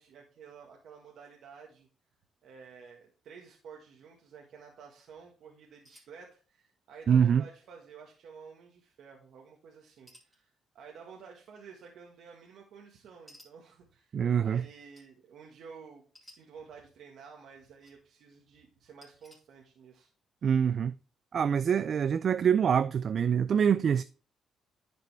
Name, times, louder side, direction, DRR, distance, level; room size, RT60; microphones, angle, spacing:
voice 1, 0.0-1.9 2.4-20.1, right 6 dB, 70° right, 1.5 m, -52 dB
sound 1, 5.8-6.2 7.2-7.3 7.6-7.9 10.1-10.4 11.7-11.8 13.3-13.5 14.9-15.1 16.1-16.4 17.4-17.9 19.0-19.4, equal, ahead, 4.0 m, -57 dB
voice 2, 7.1-7.4 14.1-14.6 20.4-20.9 21.3-24.0, right 7 dB, 55° right, 0.3 m, -25 dB
10.5 x 5.1 x 3.3 m
cardioid pair, 90°, 0 cm